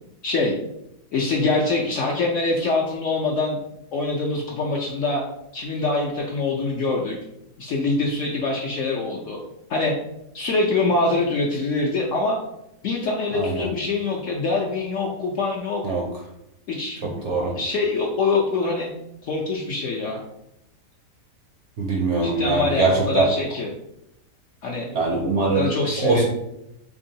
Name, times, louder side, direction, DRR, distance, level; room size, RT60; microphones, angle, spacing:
voice 1, 0.2-0.5 1.1-3.6 3.9-5.2 5.5-7.2 7.6-9.4 9.7-9.9 10.3-12.4 12.8-15.8 16.7-18.9 19.2-20.2 22.2-23.7 24.6-24.9 25.5-26.2, left 3 dB, 70° left, -2 dB, 0.7 m, -24 dB
voice 2, 13.3-13.7 15.8-16.0 17.0-17.5 21.8-23.3 24.9-25.7 26.0-26.2, right 3 dB, 65° right, -1 dB, 0.7 m, -22 dB
3.7 x 3.3 x 2.6 m, 0.83 s
omnidirectional pair, 1.7 m